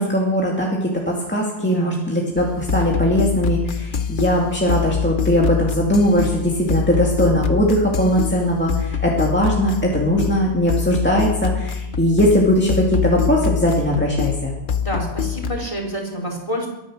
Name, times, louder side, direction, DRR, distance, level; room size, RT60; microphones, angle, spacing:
voice 1, 0.0-14.5, equal, 10° left, -3 dB, 2.3 m, -19 dB
voice 2, 1.6-2.0 14.8-16.7, equal, 30° left, 1 dB, 4.0 m, -28 dB
sound 1, 2.4-15.7, left 7 dB, 55° left, 1.0 m, -25 dB
22.5 x 9.7 x 6.3 m, 0.96 s
omnidirectional pair, 1.0 m